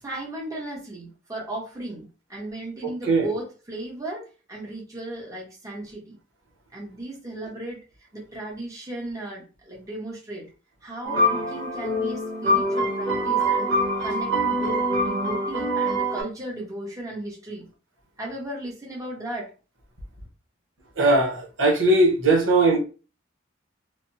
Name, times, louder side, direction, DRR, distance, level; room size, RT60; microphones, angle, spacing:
voice 1, 0.0-6.2 6.7-7.8 8.1-10.5 10.8-13.7 14.0-17.7 18.2-19.5, right 1 dB, 15° right, 1.0 m, -35 dB
sound 1, 11.0-16.2, equal, 65° right, 1.2 m, -24 dB
voice 2, 21.0-22.8, right 2 dB, 80° right, 0.9 m, -19 dB
3.3 x 2.1 x 2.7 m
head